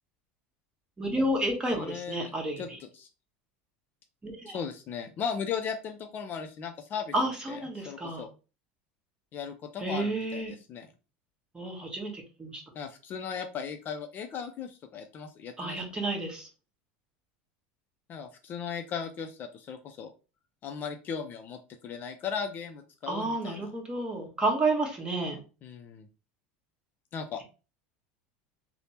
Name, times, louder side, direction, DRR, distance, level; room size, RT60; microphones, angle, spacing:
voice 1, 1.0-2.8 4.2-4.6 7.1-8.2 9.8-10.5 11.5-12.6 15.6-16.5 23.1-25.4, right 2 dB, 15° right, 1 dB, 1.1 m, -31 dB
voice 2, 1.8-3.1 4.5-7.1 7.5-8.3 9.3-10.9 12.7-15.8 18.1-20.1 20.6-23.6 25.6-26.1 27.1-27.4, left 6 dB, 40° left, 6 dB, 0.4 m, -37 dB
3.2 x 2.0 x 2.8 m, 0.32 s
supercardioid pair, 110°, 5 cm